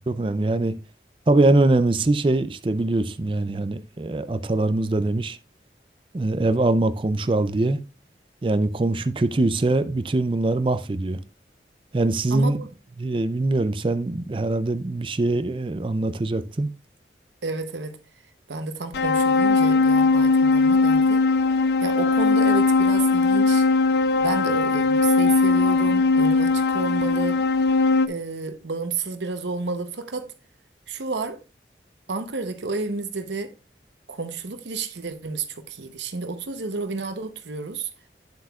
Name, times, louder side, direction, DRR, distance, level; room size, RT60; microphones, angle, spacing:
voice 1, 0.1-0.7 1.3-5.4 6.1-7.8 8.4-11.2 11.9-12.6 13.0-16.7, right 2 dB, 30° right, 0.4 m, -22 dB
voice 2, 12.3-12.7 17.4-18.0 18.5-21.2 21.8-23.6 24.2-27.4 28.1-30.3 30.9-31.4 32.1-33.5 34.1-37.9, right 3 dB, 85° right, 0.9 m, -31 dB
sound 1, 18.9-28.1, left 3 dB, 65° left, 0.4 m, -19 dB
8.7 x 7.8 x 2.4 m
head